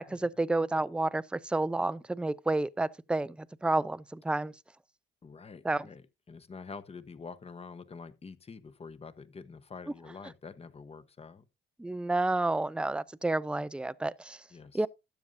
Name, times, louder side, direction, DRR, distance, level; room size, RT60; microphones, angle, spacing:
voice 1, 0.0-4.5 5.6-5.9 11.8-14.4 14.7-14.9, right 2 dB, 5° right, 0.5 m, -30 dB
voice 2, 5.2-11.4 14.5-14.9, left 5 dB, 30° left, 1.1 m, -47 dB
13.0 x 9.1 x 2.6 m
cardioid pair, 90°, 20 cm